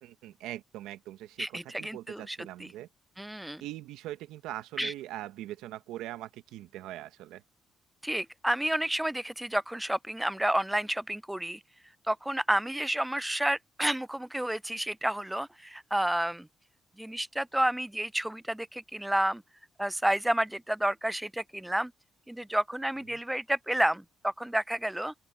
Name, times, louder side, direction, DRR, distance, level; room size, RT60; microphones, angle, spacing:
voice 1, 0.0-2.9 3.6-7.4 23.1-23.2, right 14 dB, 85° right, 1.4 m, -42 dB
voice 2, 1.4-2.7 3.2-3.6 4.8-4.9 8.0-11.6 12.1-16.5 17.0-19.4 19.8-21.9 22.3-25.1, right 1 dB, 10° right, 0.5 m, -30 dB
open air
supercardioid pair, 60°, 0 cm